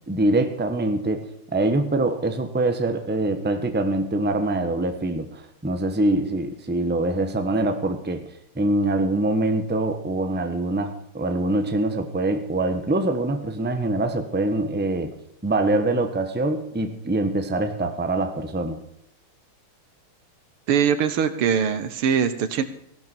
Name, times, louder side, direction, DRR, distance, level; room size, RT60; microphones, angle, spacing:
voice 1, 0.0-8.2 8.5-15.1 15.4-18.8, right 2 dB, 5° right, 7 dB, 0.8 m, -24 dB
voice 2, 20.7-22.6, right 7 dB, 90° right, 11 dB, 2.1 m, -22 dB
15.5 x 12.0 x 4.5 m, 0.74 s
omnidirectional pair, 2.3 m